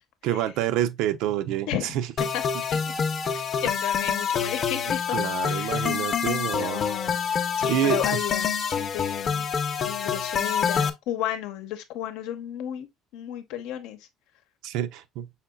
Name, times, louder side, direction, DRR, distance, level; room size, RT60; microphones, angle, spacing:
voice 1, 0.2-1.7 1.9-2.1 5.1-6.8 7.7-8.2 14.6-15.3, right 12 dB, 80° right, 0.5 m, -27 dB
voice 2, 1.7-2.4 2.7-2.8 3.3-5.2 5.4-6.0 6.4-7.2 7.6-9.5 9.8-12.9 13.1-14.1, left 11 dB, 90° left, 0.8 m, -33 dB
sound 1, 2.2-10.9, left 6 dB, 35° left, 0.6 m, -26 dB
5.7 x 3.9 x 2.2 m
cardioid pair, 155°, 0 cm